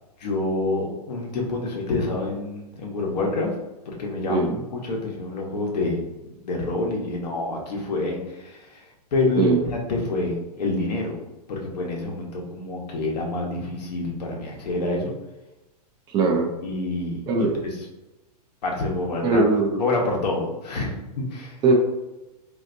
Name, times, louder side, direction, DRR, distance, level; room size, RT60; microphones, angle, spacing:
voice 1, 0.2-3.5 3.9-6.0 6.4-8.8 9.1-11.2 11.5-15.1 16.6-17.5 18.6-19.4 19.8-21.6, left 2 dB, 80° left, 0 dB, 1.0 m, -27 dB
voice 2, 4.3-4.6 9.4-9.6 16.1-16.5 17.3-17.6 19.2-19.8 21.6-21.7, right 3 dB, 20° right, 1 dB, 0.3 m, -20 dB
3.3 x 2.6 x 2.5 m, 1.0 s
hypercardioid pair, 140°, 21 cm